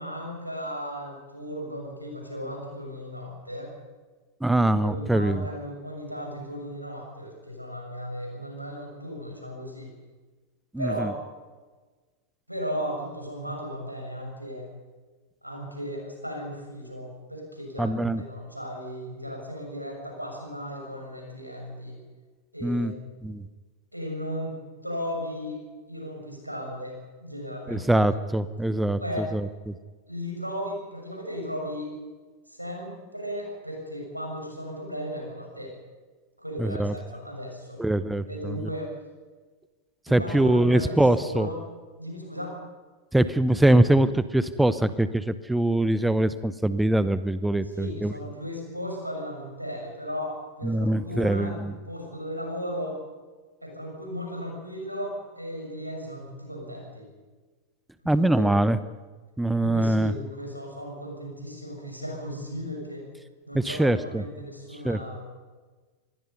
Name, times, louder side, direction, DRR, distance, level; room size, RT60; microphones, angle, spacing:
voice 1, 0.0-3.7 4.5-9.9 10.8-11.2 12.5-14.7 15.4-22.0 22.5-22.9 23.9-25.6 25.9-28.0 29.0-29.3 30.1-31.9 32.5-35.7 36.4-37.8 38.3-39.0 40.1-41.6 42.0-42.6 47.6-51.6 51.8-53.0 53.6-57.0 58.0-58.6 59.6-63.1 63.5-65.2, equal, 90° right, 1 dB, 6.9 m, -36 dB
voice 2, 4.4-5.4 10.7-11.1 17.8-18.2 22.6-22.9 23.2-23.4 27.7-29.7 36.6-36.9 37.8-38.6 40.1-41.5 43.1-48.1 50.6-51.7 58.1-58.8 59.4-60.1 63.5-64.2 64.8-65.0, right 1 dB, 5° right, 15 dB, 0.8 m, -23 dB
26.0 x 20.5 x 5.5 m, 1.3 s
figure-of-eight pair, 90°, 0 cm